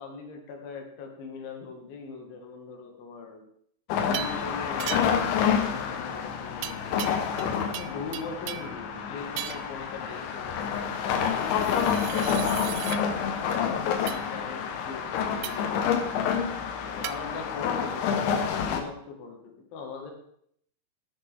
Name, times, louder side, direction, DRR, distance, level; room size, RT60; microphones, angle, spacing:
voice 1, 0.0-3.4 4.0-7.2 7.8-12.9 13.5-16.5 16.8-20.1, left 4 dB, 55° left, 2 dB, 3.4 m, -41 dB
sound 1, 3.9-18.8, left 7 dB, 80° left, 3.6 m, -28 dB
sound 2, 4.1-4.4 4.8-5.3 6.6-7.5 7.7-8.8 9.4-9.8 11.5-13.0 14.1-14.3 15.4-15.7 17.0-17.2, right 14 dB, 90° right, 3.1 m, -37 dB
16.0 x 11.0 x 3.7 m, 0.68 s
omnidirectional pair, 5.4 m